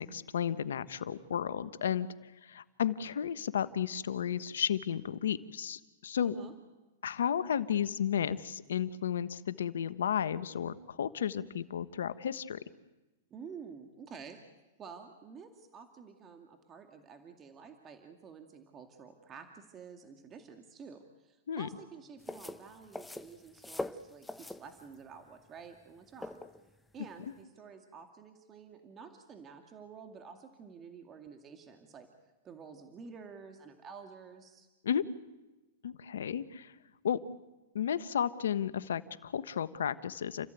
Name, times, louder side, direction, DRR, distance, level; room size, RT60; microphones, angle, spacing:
voice 1, 0.0-2.1 2.4-6.3 7.0-12.6 21.5-21.7 34.8-35.1 35.8-36.7 37.0-37.2 37.7-40.5, left 9 dB, 80° left, 14 dB, 1.2 m, -33 dB
voice 2, 6.2-6.5 13.3-14.4 14.8-26.4 26.9-32.1 32.4-34.7, right 6 dB, 25° right, 5 dB, 2.3 m, -50 dB
sound 1, 22.2-27.4, left 2 dB, 5° left, 0.9 m, -43 dB
30.0 x 14.5 x 9.3 m, 1.1 s
hypercardioid pair, 120°, 0 cm